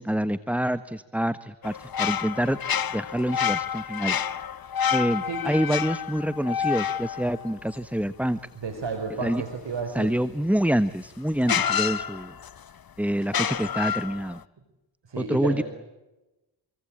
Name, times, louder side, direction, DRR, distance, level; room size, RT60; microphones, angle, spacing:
voice 1, 0.0-2.6 2.9-4.2 4.9-8.4 9.2-9.4 9.9-12.3 13.0-14.4 15.2-15.6, equal, 5° right, 14 dB, 1.2 m, -26 dB
sound 1, 1.6-8.2 10.6-10.7 11.4-12.6 13.2-14.4, left 8 dB, 45° left, 1.1 m, -29 dB
voice 2, 8.5-10.1 15.1-15.6, right 4 dB, 60° right, 6 dB, 4.8 m, -31 dB
28.5 x 23.0 x 8.8 m, 1.0 s
supercardioid pair, 40°, 49 cm